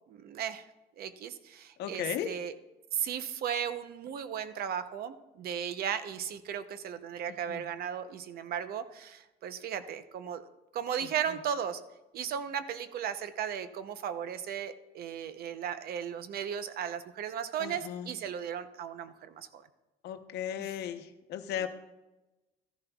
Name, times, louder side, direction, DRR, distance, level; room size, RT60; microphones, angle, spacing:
voice 1, 0.1-0.6 1.0-2.5 2.9-10.4 10.7-11.8 12.1-19.6 21.6-21.7, right 8 dB, 65° right, 12 dB, 0.7 m, -36 dB
voice 2, 1.8-2.4 7.5-7.6 11.0-11.4 17.6-18.1 20.0-21.7, left 10 dB, 75° left, 7 dB, 0.8 m, -36 dB
14.0 x 10.5 x 2.3 m, 1.0 s
cardioid pair, 110°, 17 cm